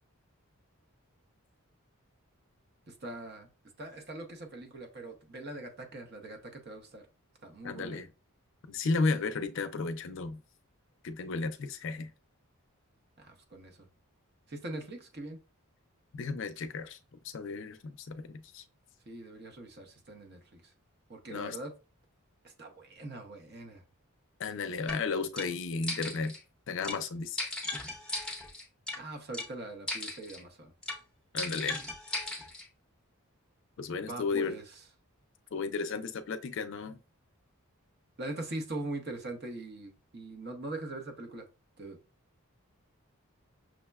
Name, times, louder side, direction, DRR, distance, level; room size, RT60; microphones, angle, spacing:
voice 1, 2.9-3.5 3.8-7.1 7.4-8.0 13.2-13.9 14.5-15.4 19.1-20.7 21.1-21.7 22.4-23.8 29.0-30.7 34.0-34.6 38.2-41.5 41.8-42.0, right 2 dB, 45° right, 0.8 m, -42 dB
voice 2, 7.6-8.1 8.7-10.4 11.0-12.1 16.1-17.0 17.2-18.6 21.3-21.6 24.4-26.4 26.7-27.4 31.3-31.8 33.8-34.5 35.5-37.0, left 4 dB, 55° left, 0.4 m, -33 dB
sound 1, 24.9-25.0 25.4-25.5 25.8-26.4 26.8-27.0 27.4-29.0 29.3-29.5 29.9-30.4 30.8-31.0 31.4-32.6, left 2 dB, 5° left, 0.6 m, -37 dB
6.1 x 2.1 x 2.3 m
head